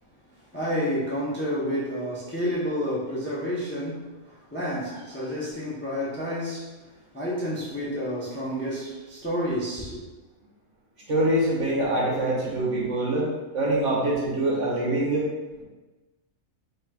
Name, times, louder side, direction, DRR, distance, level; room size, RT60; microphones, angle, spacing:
voice 1, 0.5-6.7 7.1-10.0, equal, 15° left, -8 dB, 0.4 m, -30 dB
voice 2, 11.1-13.3 13.5-15.3, right 1 dB, 55° right, -6 dB, 1.3 m, -24 dB
4.4 x 3.0 x 2.3 m, 1.2 s
omnidirectional pair, 1.6 m